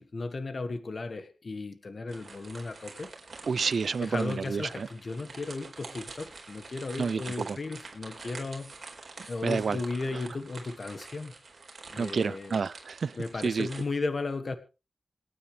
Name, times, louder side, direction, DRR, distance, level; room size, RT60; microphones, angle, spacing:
voice 1, 0.0-3.1 4.0-8.9 9.2-11.3 11.9-12.6 13.2-14.6, left 3 dB, 50° left, 1.5 m, -35 dB
sound 1, 2.1-13.8, right 3 dB, 55° right, 4.6 m, -46 dB
voice 2, 3.5-4.9 7.0-7.6 9.4-9.8 10.1-10.2 12.0-13.2 13.4-13.7, right 5 dB, 75° right, 0.6 m, -29 dB
27.0 x 9.5 x 3.4 m
wide cardioid pair, 90°, 0 cm